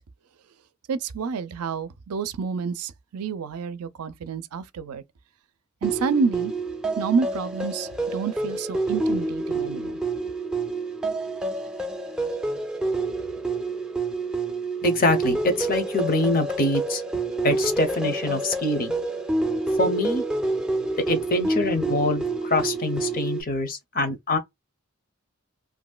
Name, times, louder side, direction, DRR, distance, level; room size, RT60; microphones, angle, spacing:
voice 1, 0.9-5.0 5.8-6.5 7.0-10.0, right 5 dB, 90° right, 0.5 m, -28 dB
sound 1, 5.8-23.4, right 2 dB, 5° right, 0.4 m, -28 dB
voice 2, 14.8-17.0 17.4-18.9 19.8-20.2 21.1-24.4, left 2 dB, 40° left, 0.6 m, -24 dB
3.0 x 2.6 x 2.2 m
head